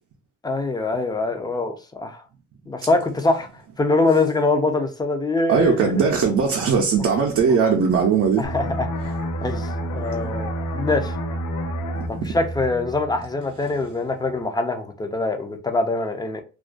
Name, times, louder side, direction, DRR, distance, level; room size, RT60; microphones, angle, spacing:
voice 1, 0.4-2.2 2.7-3.5 3.8-6.0 7.6-7.7 8.4-8.9 9.4-11.1 12.1-16.4, left 3 dB, 15° left, 0.4 m, -24 dB
voice 2, 5.5-8.4 12.2-12.4, right 6 dB, 60° right, 0.5 m, -19 dB
sound 1, 8.4-13.8 14.2-14.4, right 1 dB, 90° left, 0.5 m, -29 dB
2.4 x 2.1 x 2.4 m
cardioid pair, 110°, 29 cm